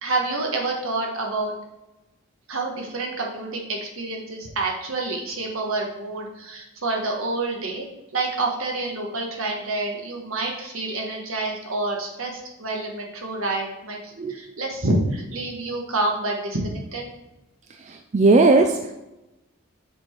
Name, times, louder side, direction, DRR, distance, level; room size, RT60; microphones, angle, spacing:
voice 1, 0.0-1.5 2.5-7.8 8.1-17.1, right 2 dB, 75° right, 0 dB, 1.5 m, -28 dB
voice 2, 17.8-18.9, right 3 dB, 35° right, 5 dB, 0.4 m, -18 dB
7.7 x 4.5 x 4.5 m, 0.95 s
head